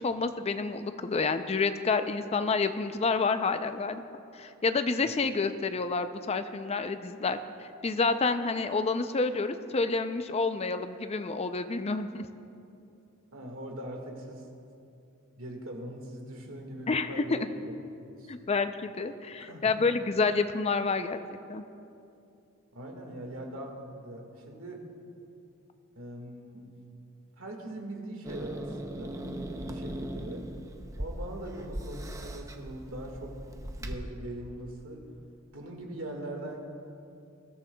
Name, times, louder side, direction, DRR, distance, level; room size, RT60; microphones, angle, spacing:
voice 1, 0.0-4.0 4.3-12.3 16.9-17.5 18.3-21.2 21.5-21.6, left 4 dB, 30° left, 10 dB, 0.5 m, -29 dB
voice 2, 13.3-14.5 15.4-17.7 18.0-18.3 19.4-19.7 22.7-24.9 25.9-26.7 27.4-29.2 29.6-30.4 30.9-33.4 33.8-35.0 35.5-36.6, right 1 dB, 90° right, 1 dB, 1.8 m, -41 dB
Growling / Hiss, 28.2-33.9, right 1 dB, 15° right, 0.6 m, -39 dB
20.5 x 13.0 x 2.3 m, 2.7 s
head